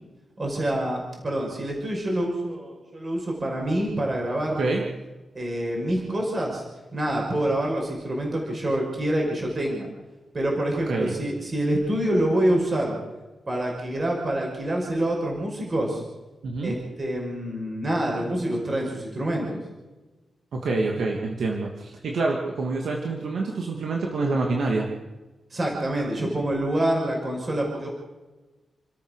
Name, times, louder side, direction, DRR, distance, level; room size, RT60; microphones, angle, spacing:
voice 1, 0.4-4.6 5.3-6.6 6.9-9.9 10.3-13.0 13.5-16.0 16.6-19.6 25.5-27.9, right 1 dB, 30° right, -1 dB, 5.4 m, -26 dB
voice 2, 16.4-16.7 20.5-24.9, right 3 dB, 75° right, 0 dB, 2.6 m, -26 dB
29.5 x 13.5 x 6.6 m, 1.2 s
wide cardioid pair, 150°, 0 cm